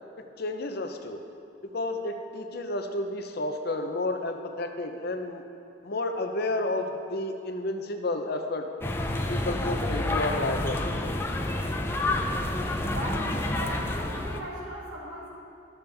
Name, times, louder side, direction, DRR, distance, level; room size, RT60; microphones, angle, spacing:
voice 1, 0.4-1.2 1.6-5.4 5.8-8.7 9.3-11.2, left 2 dB, 50° left, 5 dB, 0.7 m, -31 dB
sound 1, 8.8-14.4, left 2 dB, 10° left, 0.5 m, -29 dB
voice 2, 12.9-15.3, equal, 70° right, -6 dB, 2.5 m, -37 dB
13.0 x 7.0 x 3.4 m, 2.5 s
head